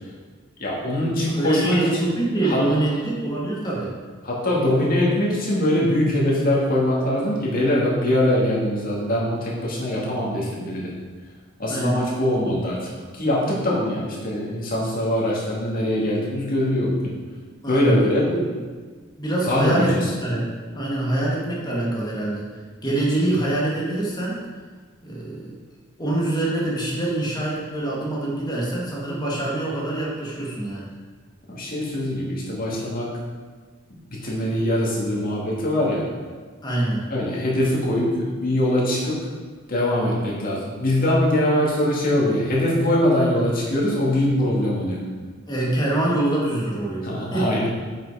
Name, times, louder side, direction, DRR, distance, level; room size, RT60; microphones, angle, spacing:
voice 1, 0.6-2.1 2.4-2.7 4.2-11.0 11.6-17.1 17.7-18.3 19.4-20.1 31.5-33.1 34.1-36.1 37.1-39.2 39.7-45.1 47.0-47.7, left 1 dB, 45° left, -4 dB, 2.1 m, -22 dB
voice 2, 1.3-3.9 11.7-12.0 17.6-17.9 18.3-18.6 19.2-22.5 22.8-24.4 25.0-25.5 26.0-30.9 36.6-37.1 45.5-47.6, right 1 dB, 20° left, -4 dB, 1.6 m, -25 dB
7.3 x 5.7 x 5.0 m, 1.5 s
head